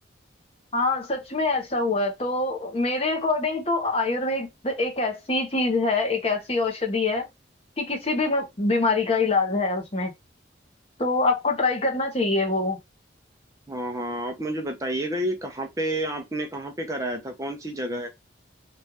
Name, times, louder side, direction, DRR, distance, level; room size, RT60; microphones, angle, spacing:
voice 1, 0.7-7.3 7.8-10.1 11.0-12.8, left 3 dB, 30° left, 1.0 m, -24 dB
voice 2, 13.7-18.1, right 1 dB, 20° right, 0.6 m, -30 dB
3.2 x 2.5 x 2.9 m
head